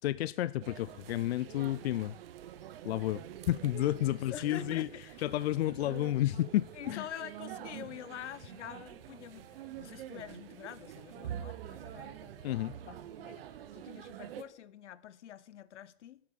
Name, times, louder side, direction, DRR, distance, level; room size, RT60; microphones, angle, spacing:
voice 1, 0.0-2.2 2.8-4.9 5.2-7.1 12.4-12.7, left 14 dB, 65° left, 0.5 m, -31 dB
sound 1, 0.6-14.4, right 11 dB, 55° right, 1.1 m, -46 dB
voice 2, 4.1-5.0 6.7-13.5 13.7-16.2, left 11 dB, 90° left, 1.0 m, -46 dB
sound 2, 7.5-13.5, left 3 dB, 10° left, 1.2 m, -65 dB
11.0 x 8.8 x 6.6 m
supercardioid pair, 165°, 34 cm